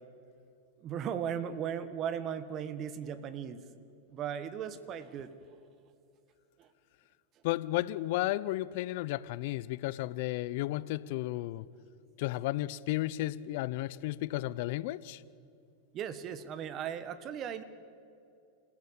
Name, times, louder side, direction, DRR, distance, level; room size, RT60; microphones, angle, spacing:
voice 1, 0.8-3.6 4.1-5.3 6.6-6.7 15.9-17.6, right 8 dB, 40° right, 1.5 m, -37 dB
voice 2, 7.4-11.7 12.2-15.2, left 16 dB, 60° left, 0.7 m, -33 dB
27.5 x 16.0 x 8.7 m
hypercardioid pair, 110°, 0 cm